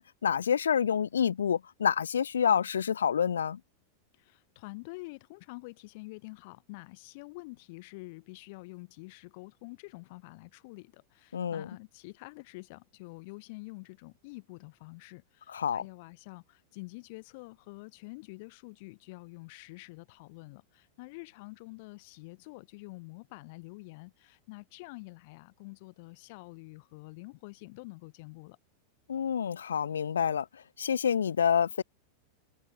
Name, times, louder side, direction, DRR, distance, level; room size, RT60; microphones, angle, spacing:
voice 1, 0.0-3.6 11.3-11.7 15.5-15.8 29.1-30.5 30.8-31.8, left 8 dB, 70° left, 0.4 m, -28 dB
voice 2, 4.1-28.6, left 26 dB, 50° left, 2.4 m, -47 dB
figure-of-eight pair, 90°, 0 cm